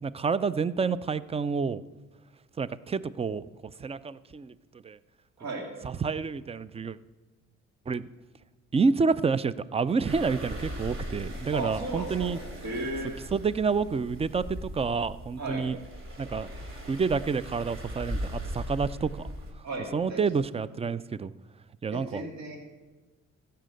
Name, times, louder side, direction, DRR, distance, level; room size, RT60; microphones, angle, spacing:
voice 1, 0.0-1.8 2.6-3.4 3.8-4.5 4.8-5.0 5.8-7.0 7.9-8.1 8.7-12.4 13.3-15.8 16.2-16.5 16.9-19.3 19.9-21.3 21.8-22.2, right 5 dB, 20° right, 17 dB, 0.4 m, -28 dB
sound 1, 10.0-19.5, equal, 45° right, 3.1 m, -39 dB
voice 2, 11.5-12.3 12.6-13.2 15.4-15.6 19.6-20.2 21.9-22.6, right 2 dB, 60° right, 1 dB, 2.6 m, -35 dB
14.5 x 5.7 x 7.6 m, 1.2 s
cardioid pair, 90°, 30 cm